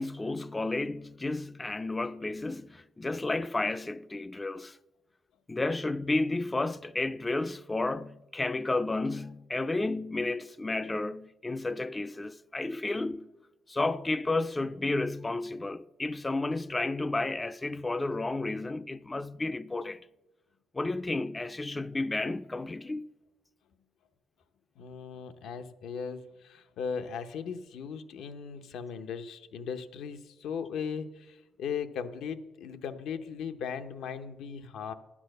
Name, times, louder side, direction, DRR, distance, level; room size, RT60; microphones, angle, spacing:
voice 1, 0.0-4.8 5.5-13.3 13.7-20.0 20.7-23.1, left 2 dB, 20° left, 0.4 m, -32 dB
voice 2, 24.8-34.9, left 6 dB, 80° left, 0.8 m, -38 dB
11.5 x 8.6 x 6.6 m
cardioid pair, 90°, 0 cm